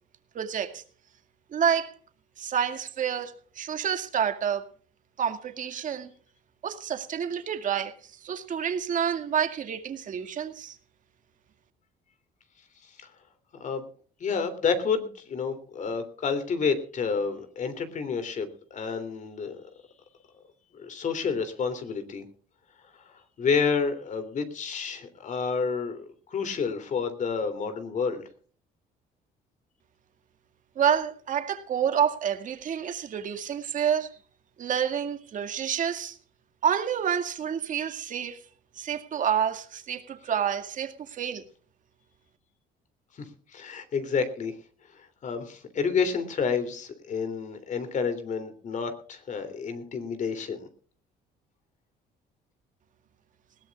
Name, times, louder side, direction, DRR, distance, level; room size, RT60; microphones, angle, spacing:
voice 1, 0.3-0.8 1.5-1.9 2.4-4.7 5.2-6.1 6.6-10.8 30.8-34.2 34.6-36.2 36.6-38.4 38.8-41.4, right 8 dB, 50° right, 2.2 m, -28 dB
voice 2, 14.2-19.7 20.7-22.2 23.4-28.2 43.2-43.3 43.5-44.5 44.9-50.7, left 5 dB, 45° left, 3.1 m, -29 dB
20.5 x 17.5 x 2.4 m
cardioid pair, 110°, 17 cm